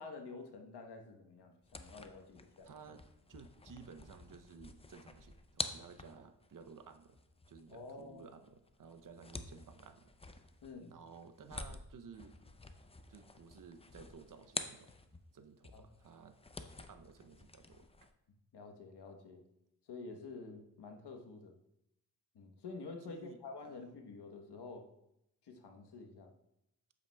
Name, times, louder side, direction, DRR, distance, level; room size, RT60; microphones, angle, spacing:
voice 1, 0.0-2.7 7.7-8.3 10.6-10.9 15.7-15.9 18.5-19.4 19.8-21.6 22.3-24.9 25.4-26.3, left 3 dB, 70° left, 4 dB, 1.1 m, -49 dB
sound 1, 1.6-15.3 15.6-18.1, left 3 dB, 15° left, 0.4 m, -48 dB
voice 2, 2.6-3.0 3.3-7.2 7.5-10.1 10.9-12.4 13.1-14.9 15.3-16.4 16.9-17.8 23.1-23.8, right 5 dB, 50° right, 9 dB, 0.6 m, -55 dB
8.5 x 7.8 x 2.2 m, 0.82 s
cardioid pair, 90°, 41 cm